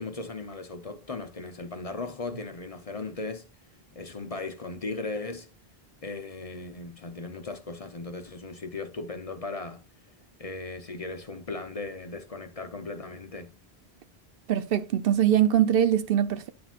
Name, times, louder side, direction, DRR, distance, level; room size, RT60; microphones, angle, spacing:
voice 1, 0.0-3.4 3.9-5.5 6.0-9.8 10.4-13.5, left 3 dB, 40° left, 0.7 m, -37 dB
voice 2, 14.5-16.5, right 10 dB, 70° right, 0.7 m, -22 dB
10.5 x 5.7 x 2.4 m
omnidirectional pair, 1.1 m